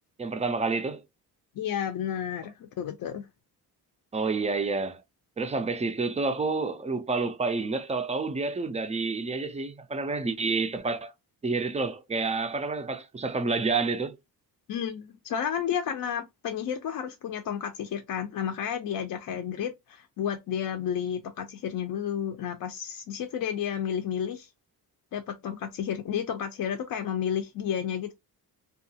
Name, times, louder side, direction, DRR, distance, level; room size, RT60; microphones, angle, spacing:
voice 1, 0.2-1.0 4.1-5.0 5.4-11.1 11.4-14.2, right 3 dB, 20° right, 0.3 m, -29 dB
voice 2, 1.6-3.3 14.7-24.5 25.1-28.1, left 8 dB, 60° left, 0.5 m, -31 dB
2.8 x 2.3 x 2.7 m
cardioid pair, 125°, 39 cm